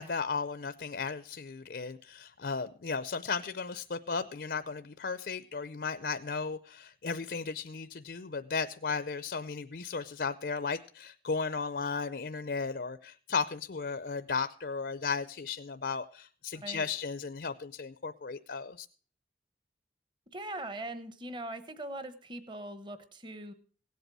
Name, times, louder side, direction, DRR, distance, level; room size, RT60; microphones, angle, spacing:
voice 1, 0.0-18.9, left 5 dB, 60° left, 12 dB, 0.5 m, -35 dB
voice 2, 16.5-16.9 20.3-23.5, right 1 dB, 25° right, 10 dB, 1.1 m, -41 dB
17.0 x 8.0 x 6.2 m, 0.42 s
head